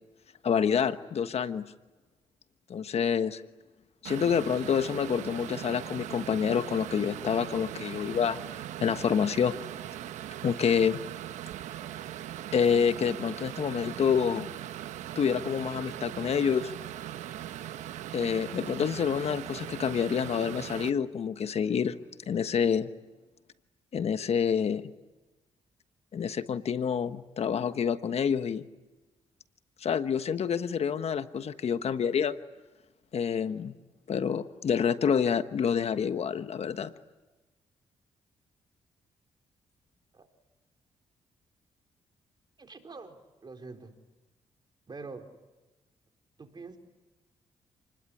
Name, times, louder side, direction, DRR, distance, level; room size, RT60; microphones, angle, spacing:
voice 1, 0.4-1.7 2.7-3.4 4.0-8.4 8.8-9.5 10.4-11.0 12.5-14.5 15.1-16.7 18.1-22.0 22.3-22.9 23.9-24.9 26.1-28.7 29.8-32.4 33.1-33.7 34.1-36.9, left 7 dB, 60° left, 11 dB, 1.3 m, -27 dB
sound 1, 4.0-20.9, right 12 dB, 85° right, 1.0 m, -40 dB
voice 2, 42.6-43.9 44.9-45.3 46.4-46.8, right 4 dB, 40° right, 5 dB, 4.3 m, -45 dB
29.0 x 21.0 x 10.0 m, 1.2 s
supercardioid pair, 65°, 12 cm